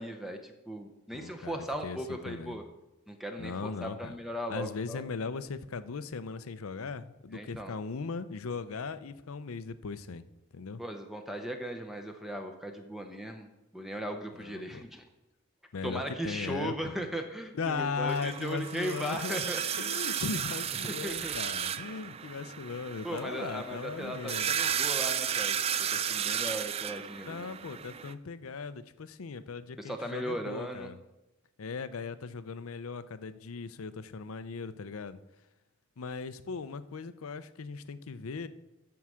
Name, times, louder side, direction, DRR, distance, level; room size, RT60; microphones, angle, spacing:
voice 1, 0.0-2.6 3.1-5.0 7.3-7.8 10.8-15.0 15.8-19.9 20.8-21.3 23.0-25.6 26.1-27.5 29.8-30.9, right 1 dB, ahead, 4 dB, 0.7 m, -38 dB
voice 2, 1.1-2.6 3.4-4.2 4.5-10.2 10.5-10.8 14.4-14.8 15.7-17.0 17.5-24.5 27.3-31.0 31.6-35.2 36.0-38.5, left 4 dB, 80° left, 13 dB, 0.6 m, -38 dB
sound 1, 18.1-28.1, right 8 dB, 30° right, 0.3 m, -34 dB
13.0 x 4.7 x 6.3 m, 1.0 s
head